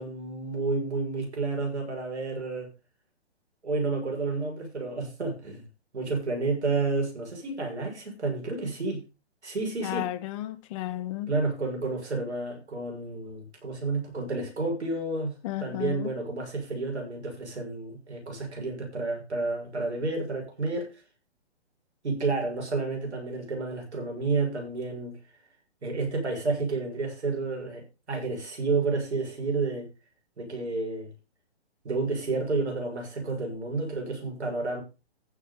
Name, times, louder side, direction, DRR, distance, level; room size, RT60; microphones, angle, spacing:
voice 1, 0.0-2.7 3.6-5.7 5.9-9.0 9.4-10.1 11.3-20.9 22.0-25.2 25.8-29.9 30.4-31.1 31.8-34.8, right 3 dB, 80° right, 7.1 m, -30 dB
voice 2, 9.8-11.3 15.4-16.1, left 15 dB, 30° left, 1.2 m, -33 dB
15.0 x 5.9 x 5.4 m
hypercardioid pair, 140°, 33 cm